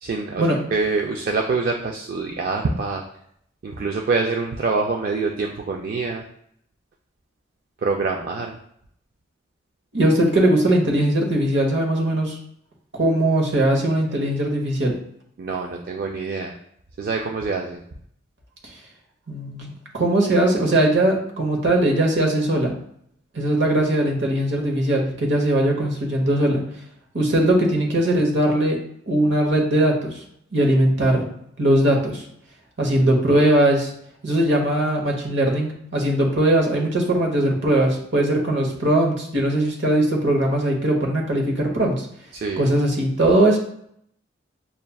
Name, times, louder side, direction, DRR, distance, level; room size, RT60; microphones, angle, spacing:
voice 1, 0.0-3.0 3.6-6.2 7.8-8.6 15.4-16.5 17.0-17.8 42.3-42.7, right 4 dB, 50° right, 2 dB, 0.4 m, -25 dB
voice 2, 9.9-12.4 12.9-14.9 18.6-18.7 19.3-22.7 23.3-26.6 27.1-28.8 29.1-30.2 30.5-31.3 31.6-32.2 32.8-33.9 34.2-42.1 42.6-43.6, right 1 dB, 65° right, 0 dB, 1.0 m, -20 dB
6.7 x 2.4 x 2.3 m, 0.71 s
head